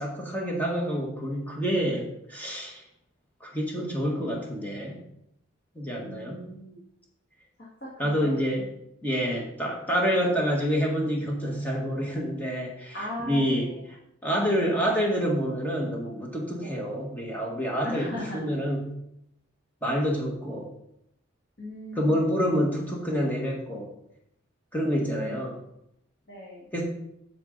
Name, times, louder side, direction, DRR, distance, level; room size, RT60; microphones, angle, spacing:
voice 1, 0.0-2.8 3.4-5.0 5.7-6.4 8.0-8.7 9.0-13.7 14.2-18.9 19.8-20.7 21.9-23.9 24.7-25.6 26.7-26.8, equal, 10° left, -2 dB, 1.6 m, -27 dB
voice 2, 6.0-6.8 7.8-8.3 9.3-9.5 12.9-13.8 16.6-16.8 17.8-18.5 21.6-22.2 25.0-25.6 26.3-26.7, left 1 dB, 50° left, -5 dB, 2.0 m, -38 dB
8.2 x 7.2 x 4.0 m, 0.79 s
head